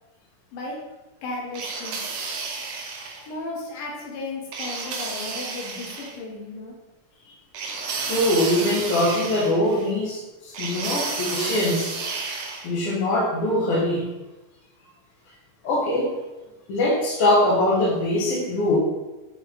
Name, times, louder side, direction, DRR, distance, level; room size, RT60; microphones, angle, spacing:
voice 1, 1.2-2.0 3.3-6.7, left 2 dB, 90° left, -2 dB, 2.9 m, -34 dB
sound 1, 1.5-3.3 4.5-6.2 7.5-9.9 10.5-12.7, right 4 dB, 75° right, 1.5 m, -31 dB
voice 2, 8.0-11.9 12.6-14.1 15.6-16.2 16.7-18.8, left 1 dB, 50° left, -4 dB, 2.1 m, -22 dB
7.6 x 3.6 x 3.9 m, 1.1 s
omnidirectional pair, 3.8 m